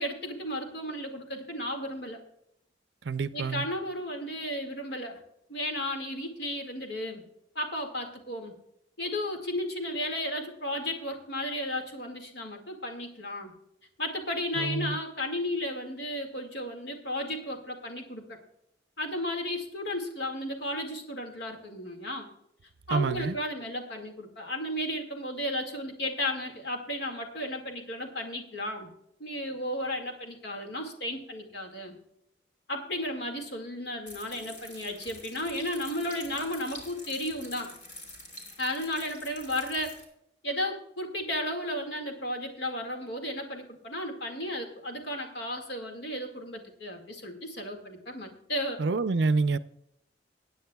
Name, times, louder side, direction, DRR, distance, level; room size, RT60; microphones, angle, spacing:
voice 1, 0.0-2.2 3.3-5.2 5.5-7.2 7.6-8.6 9.0-13.5 14.0-18.4 19.0-22.3 22.9-28.9 29.2-32.0 32.7-37.7 38.6-40.0 40.4-48.8, left 1 dB, 65° left, 2.1 m, -34 dB
voice 2, 3.0-3.7 14.6-15.0 22.9-23.4 48.8-49.6, right 4 dB, 70° right, 0.5 m, -27 dB
sound 1, 34.1-40.0, left 1 dB, 45° left, 3.6 m, -46 dB
21.0 x 9.3 x 2.3 m
head